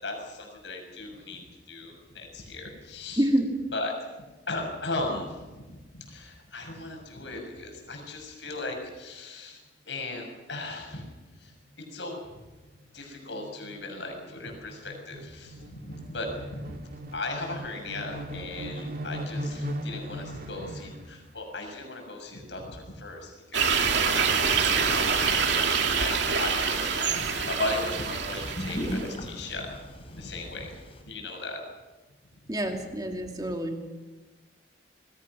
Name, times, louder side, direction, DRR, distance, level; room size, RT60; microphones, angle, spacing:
voice 1, 0.0-3.2 3.7-3.9 4.5-5.7 5.9-11.0 11.4-11.5 11.9-12.2 12.9-16.8 17.1-24.1 24.6-30.7 31.0-31.6, left 2 dB, 70° left, 2 dB, 6.8 m, -37 dB
voice 2, 3.2-3.5 32.5-33.8, right 1 dB, 20° right, 3 dB, 2.7 m, -27 dB
sound 1, 10.4-10.7 11.1-11.2 11.4-21.1, equal, 50° right, 2.2 m, -39 dB
sound 2, 23.5-29.1, right 5 dB, 70° right, 2.6 m, -26 dB
sound 3, 25.6-31.0, equal, 30° left, 3.8 m, -40 dB
27.5 x 21.0 x 6.2 m, 1.2 s
head